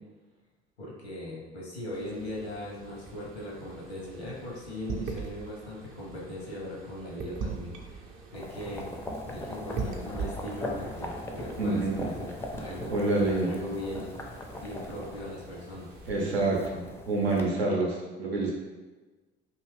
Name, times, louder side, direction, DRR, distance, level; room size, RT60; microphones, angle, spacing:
voice 1, 0.8-8.9 9.3-13.0 13.4-14.2 14.6-15.9, left 1 dB, 85° left, -4 dB, 0.8 m, -39 dB
sound 1, 1.9-16.1, right 4 dB, 45° right, 0.6 m, -42 dB
sound 2, 8.3-17.4, left 1 dB, 10° left, 0.4 m, -40 dB
voice 2, 11.6-12.0 12.9-13.5 16.1-18.5, right 2 dB, 85° right, -3 dB, 0.7 m, -27 dB
2.6 x 2.4 x 3.3 m, 1.3 s
figure-of-eight pair, 60°, 31 cm